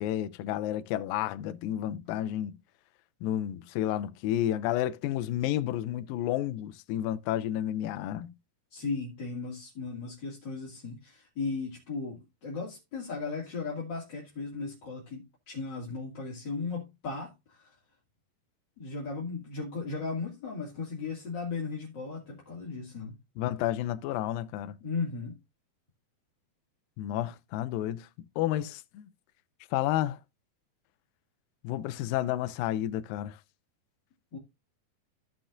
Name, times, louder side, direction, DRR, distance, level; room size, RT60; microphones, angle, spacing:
voice 1, 0.0-2.5 3.2-8.3 23.4-24.8 27.0-28.1 28.4-29.1 29.7-30.2 31.6-33.4, left 12 dB, 80° left, 2.3 m, -31 dB
voice 2, 8.7-17.8 18.8-23.1 24.8-25.3 34.3-34.4, left 4 dB, 35° left, 2.7 m, -36 dB
15.0 x 6.0 x 2.6 m
omnidirectional pair, 4.1 m